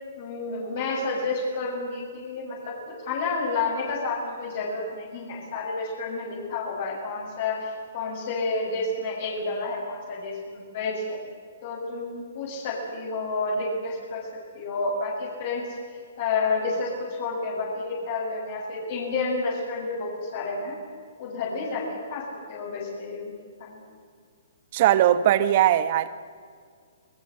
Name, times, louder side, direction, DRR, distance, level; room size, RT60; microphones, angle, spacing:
voice 1, 0.2-11.2 11.6-14.2 14.5-15.8 16.2-20.8 21.2-22.2 22.5-23.3 23.6-23.8, left 3 dB, 55° left, 7.4 m, -30 dB
voice 2, 24.7-26.1, right 11 dB, 45° right, 1.3 m, -19 dB
29.0 x 20.5 x 8.0 m
hypercardioid pair, 150°, 0 cm